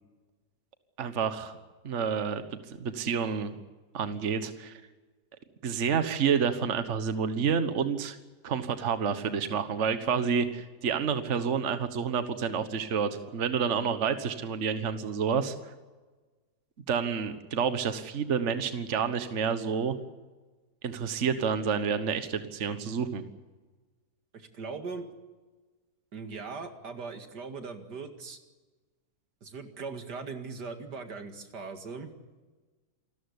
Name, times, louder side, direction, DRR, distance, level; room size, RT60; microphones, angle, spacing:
voice 1, 1.0-1.6 1.8-3.6 3.9-4.7 5.6-8.2 8.4-15.5 16.9-19.9 20.8-23.2, right 6 dB, 50° right, 10 dB, 1.5 m, -29 dB
voice 2, 24.3-25.1 26.1-28.4 29.4-32.1, right 4 dB, 85° right, 6 dB, 2.7 m, -39 dB
28.0 x 14.0 x 9.8 m, 1.3 s
omnidirectional pair, 1.7 m